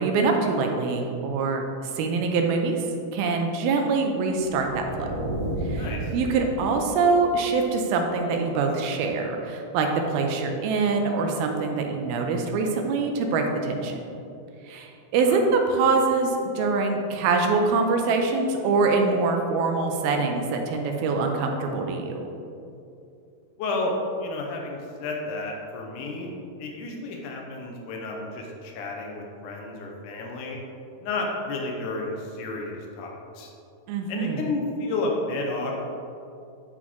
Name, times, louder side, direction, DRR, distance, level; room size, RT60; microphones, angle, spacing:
voice 1, 0.0-1.6 2.0-2.8 3.1-5.1 5.7-5.9 6.1-14.0 14.7-22.2 33.9-34.4, right 4 dB, 80° right, 3 dB, 2.4 m, -24 dB
sound 1, 4.3-7.2, right 1 dB, 65° right, 2.8 m, -32 dB
voice 2, 5.8-6.1 15.3-15.4 23.6-23.9 24.2-26.3 26.6-30.6 31.0-33.5 34.1-35.7, left 2 dB, 85° left, 0 dB, 1.8 m, -31 dB
11.0 x 4.1 x 3.0 m, 2.7 s
omnidirectional pair, 4.5 m